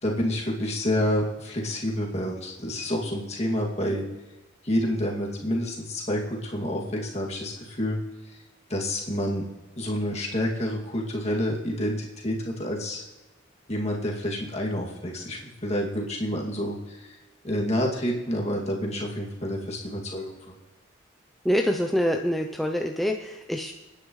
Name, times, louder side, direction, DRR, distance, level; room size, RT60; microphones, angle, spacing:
voice 1, 0.0-4.0 4.6-8.0 8.2-8.4 8.7-9.4 9.8-13.0 13.7-17.2 17.4-20.6, equal, 35° left, -2 dB, 2.4 m, -28 dB
voice 2, 21.4-23.7, equal, ahead, 2 dB, 0.5 m, -25 dB
29.5 x 9.9 x 3.2 m, 1.1 s
head